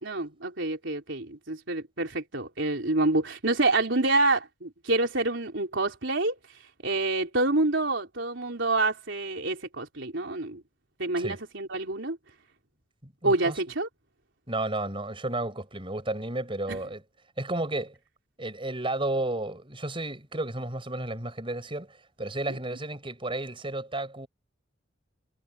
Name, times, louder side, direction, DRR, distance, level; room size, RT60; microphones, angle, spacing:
voice 1, 0.0-6.4 6.8-10.6 11.0-12.2 13.2-13.9 16.7-16.8 22.5-22.6, right 2 dB, 65° right, 4.3 m, -27 dB
voice 2, 13.0-13.6 14.5-17.0 17.4-18.0 18.4-24.3, right 2 dB, 25° right, 6.0 m, -32 dB
head